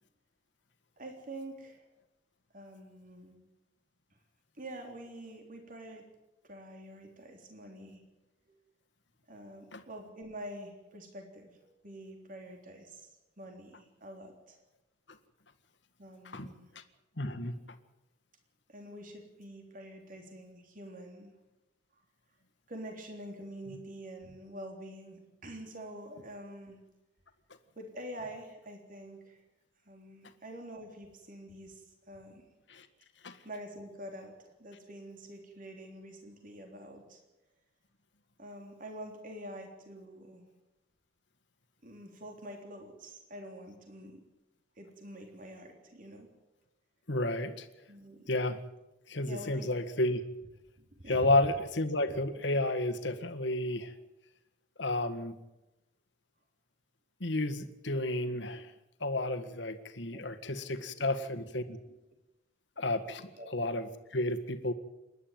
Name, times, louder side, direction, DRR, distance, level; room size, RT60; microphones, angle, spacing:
voice 1, 1.0-1.9 2.5-3.4 4.6-6.1 6.4-8.0 9.3-14.6 16.0-16.7 18.7-21.3 22.7-26.8 27.8-29.4 29.9-32.4 33.4-37.2 38.4-40.5 41.8-44.2 44.8-46.3 47.9-48.3 49.3-49.7 50.9-51.3 52.1-52.2 60.1-60.3 60.5-60.7 61.9-62.0 63.3-63.5, right 1 dB, 45° right, 3 dB, 3.5 m, -46 dB
voice 2, 17.2-17.6 32.7-32.9 33.2-33.4 47.1-47.7 48.3-48.6 49.1-50.2 51.1-53.9 54.8-55.4 57.2-58.7 59.0-61.8 62.8-64.7, left 2 dB, 65° left, 8 dB, 1.7 m, -31 dB
27.5 x 11.5 x 9.3 m, 0.99 s
head